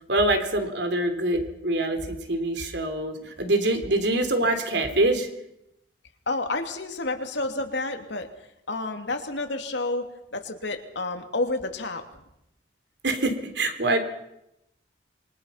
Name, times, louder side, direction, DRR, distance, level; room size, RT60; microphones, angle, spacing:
voice 1, 0.1-5.3 13.0-14.0, right 1 dB, 65° right, 7 dB, 3.8 m, -25 dB
voice 2, 6.3-8.3 8.7-12.1, left 2 dB, 70° left, 5 dB, 2.9 m, -30 dB
26.5 x 24.5 x 5.9 m, 0.82 s
head